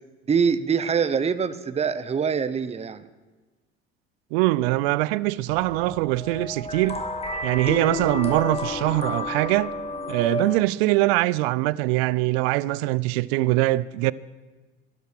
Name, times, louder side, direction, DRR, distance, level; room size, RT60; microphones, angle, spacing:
voice 1, 0.3-3.1, right 6 dB, 20° right, 0.7 m, -24 dB
voice 2, 4.3-7.0 7.4-9.7 10.1-14.1, right 18 dB, 75° right, 0.5 m, -23 dB
sound 1, 5.5-10.6, left 2 dB, 20° left, 1.8 m, -31 dB
12.5 x 12.0 x 6.1 m
hypercardioid pair, 80°, 31 cm